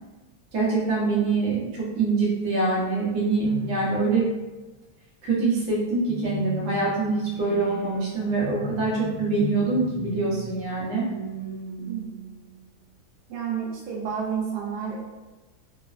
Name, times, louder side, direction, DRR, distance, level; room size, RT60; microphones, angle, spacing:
voice 1, 0.5-4.2 5.2-11.1, right 3 dB, 55° right, -6 dB, 1.0 m, -24 dB
sound 1, 3.4-4.5 6.1-12.6, left 1 dB, 20° left, 1.2 m, -37 dB
voice 2, 13.3-15.0, right 7 dB, 80° right, -3 dB, 1.2 m, -30 dB
3.0 x 2.1 x 2.3 m, 1.2 s
omnidirectional pair, 1.8 m